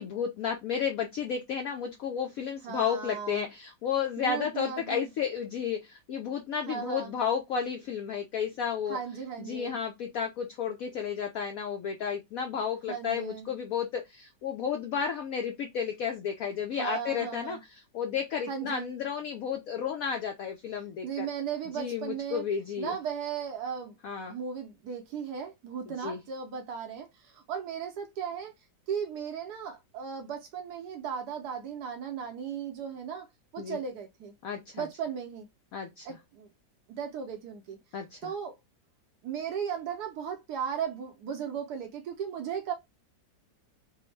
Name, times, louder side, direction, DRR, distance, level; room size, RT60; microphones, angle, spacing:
voice 1, 0.0-9.0 9.5-17.6 17.9-21.3 21.7-23.0 24.0-24.4 25.9-26.2 33.6-33.8 34.4-34.9 35.7-36.1 37.9-38.3, left 7 dB, 80° left, 0.7 m, -32 dB
voice 2, 2.6-3.5 4.2-5.1 6.7-7.1 8.9-9.8 12.9-13.5 16.8-17.6 18.5-18.9 21.0-22.4 22.8-23.9 24.3-28.5 28.9-33.3 33.5-34.3 34.7-35.5 36.0-36.5 36.9-37.8 38.2-38.6 39.2-42.7, right 7 dB, 70° right, 1.0 m, -36 dB
3.4 x 2.0 x 3.1 m
omnidirectional pair, 2.0 m